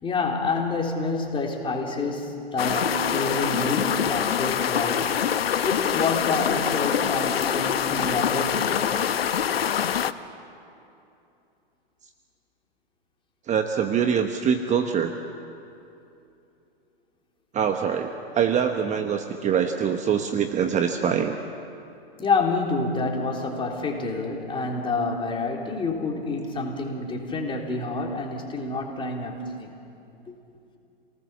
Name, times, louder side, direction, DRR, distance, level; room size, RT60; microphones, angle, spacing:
voice 1, 0.0-5.1 5.6-8.9 22.2-29.7 30.3-30.4, left 3 dB, 15° left, 0 dB, 3.7 m, -28 dB
sound 1, 2.6-10.1, left 8 dB, 85° left, 0.9 m, -25 dB
voice 2, 13.5-15.1 17.5-21.4, right 7 dB, 25° right, 6 dB, 1.2 m, -24 dB
27.5 x 19.0 x 7.3 m, 2.7 s
hypercardioid pair, 115°, 29 cm